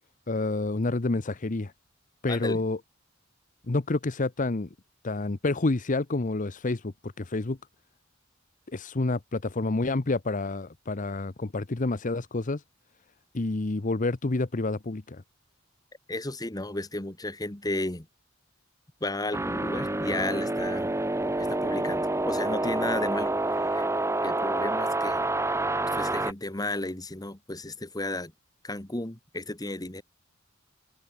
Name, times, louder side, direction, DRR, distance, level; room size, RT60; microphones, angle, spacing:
voice 1, 0.3-1.7 2.2-2.8 3.7-4.7 5.0-7.6 8.7-12.6 13.3-15.2, left 2 dB, 40° left, 0.8 m, -28 dB
voice 2, 2.3-2.6 16.1-18.1 19.0-20.9 21.4-23.9 24.2-25.2 25.9-28.3 28.6-30.0, left 2 dB, 20° left, 1.8 m, -33 dB
sound 1, 19.3-26.3, right 2 dB, 15° right, 1.2 m, -28 dB
head